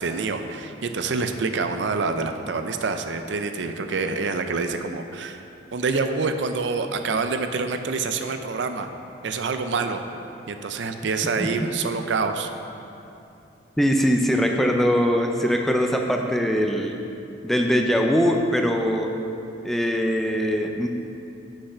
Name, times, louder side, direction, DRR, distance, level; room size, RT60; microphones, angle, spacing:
voice 1, 0.0-5.4 5.7-8.9 9.2-10.0 10.5-12.5, right 4 dB, 65° right, 7 dB, 0.5 m, -26 dB
voice 2, 13.8-17.0 17.4-19.1 19.6-20.9, equal, ahead, 2 dB, 0.4 m, -22 dB
6.8 x 5.7 x 5.5 m, 2.7 s
head